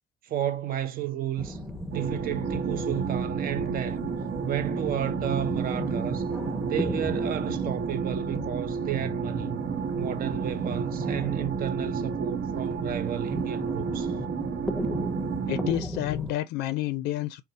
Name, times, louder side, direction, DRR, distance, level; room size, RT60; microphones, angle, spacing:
voice 1, 0.2-1.6 1.9-4.1 4.4-6.3 6.6-9.6 10.0-14.1, right 11 dB, 60° right, 0.7 m, -32 dB
sound 1, 1.4-16.3, left 1 dB, ahead, 0.6 m, -37 dB
sound 2, 1.9-15.7, right 6 dB, 80° right, 1.1 m, -31 dB
voice 2, 15.5-17.4, left 15 dB, 90° left, 0.4 m, -29 dB
3.9 x 2.3 x 4.0 m
cardioid pair, 110°, 17 cm